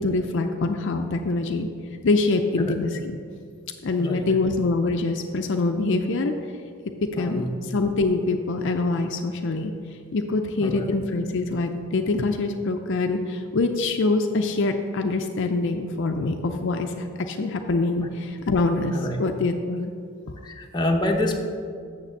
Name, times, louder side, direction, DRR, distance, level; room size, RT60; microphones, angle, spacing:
voice 1, 0.0-1.7 2.0-3.2 3.8-6.3 7.0-9.7 10.1-19.9 20.3-20.4, left 3 dB, 55° left, 5 dB, 0.5 m, -24 dB
voice 2, 4.0-4.3 7.2-7.5 10.6-10.9 18.9-19.2 20.4-21.4, left 1 dB, 20° left, 2 dB, 0.7 m, -27 dB
6.8 x 6.6 x 7.1 m, 2.3 s
head